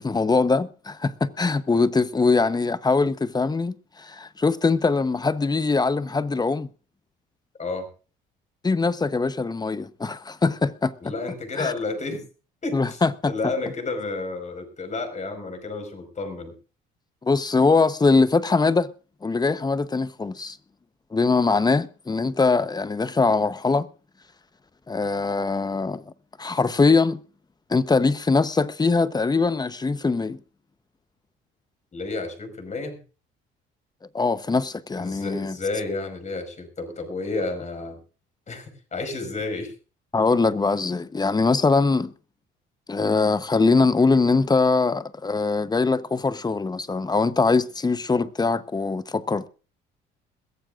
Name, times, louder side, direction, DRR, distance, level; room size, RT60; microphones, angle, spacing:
voice 1, 0.0-6.7 8.6-10.9 11.6-11.7 12.7-13.3 17.2-18.9 19.2-20.6 21.1-23.9 24.9-26.0 26.4-27.2 27.7-30.4 34.1-35.5 40.1-42.1 42.9-49.5, left 3 dB, 20° left, 0.9 m, -22 dB
voice 2, 11.0-12.2 12.6-16.5 31.9-33.0 35.0-38.0 38.5-39.7, left 3 dB, 35° left, 5.2 m, -31 dB
22.0 x 15.0 x 2.5 m
supercardioid pair, 85°, 21 cm